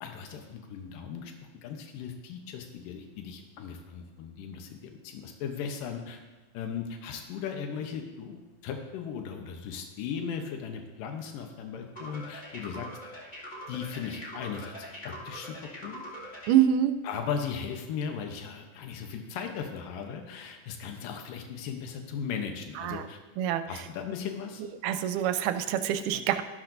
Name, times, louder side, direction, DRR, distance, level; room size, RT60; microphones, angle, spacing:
voice 1, 0.0-1.3 1.6-6.2 6.5-12.9 13.7-14.8 15.0-15.6 15.8-16.0 17.0-23.2 23.7-24.6, left 7 dB, 85° left, 4 dB, 2.6 m, -37 dB
sound 1, 11.9-16.6, equal, 20° left, 2.1 m, -43 dB
voice 2, 16.5-17.0 22.8-23.0 23.4-23.7 24.8-26.4, right 10 dB, 80° right, 10 dB, 2.1 m, -25 dB
13.0 x 12.0 x 2.6 m, 1.2 s
omnidirectional pair, 3.8 m